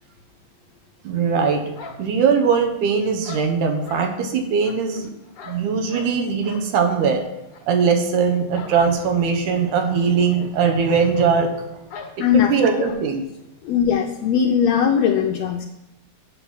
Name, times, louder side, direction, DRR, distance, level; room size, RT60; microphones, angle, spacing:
voice 1, 1.0-1.7 2.0-5.1 5.4-7.2 7.7-11.8 12.2-13.2, right 6 dB, 80° right, 5 dB, 2.6 m, -20 dB
sound 1, 1.7-2.8 3.2-4.1 4.6-6.2 6.4-6.7 7.0-7.2 7.5-7.6 8.5-8.8 9.1-9.2 9.6-9.7 10.5-10.6 10.9-11.0 11.9-12.2 12.8-13.0, left 5 dB, 55° left, 1.7 m, -40 dB
voice 2, 12.2-12.5 13.6-15.7, left 8 dB, 75° left, 3 dB, 1.7 m, -19 dB
7.8 x 6.0 x 7.2 m, 0.89 s
omnidirectional pair, 3.5 m